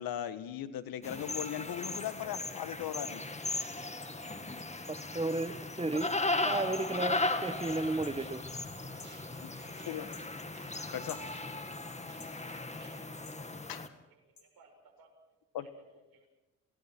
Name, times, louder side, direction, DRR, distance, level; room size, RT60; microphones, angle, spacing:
voice 1, 0.0-3.2 9.4-9.5 9.9-10.1 10.9-11.2 13.7-13.9 15.5-15.7, left 10 dB, 70° left, 12 dB, 1.6 m, -38 dB
sound 1, 1.0-13.9, left 2 dB, 20° left, 2.1 m, -37 dB
voice 2, 4.9-6.1 6.4-8.4, right 2 dB, 15° right, 14 dB, 1.3 m, -33 dB
sound 2, 7.0-13.2, right 4 dB, 55° right, 7.7 m, -58 dB
sound 3, 8.0-8.2 9.0-9.2 10.1-10.3 11.1-11.3 12.2-12.4 13.3-13.4 14.4-14.5, left 5 dB, 50° left, 3.6 m, -50 dB
voice 3, 14.1-15.1 15.6-16.3, right 3 dB, 70° right, 5 dB, 6.1 m, -62 dB
28.0 x 18.0 x 6.1 m, 1.0 s
hypercardioid pair, 55°, 37 cm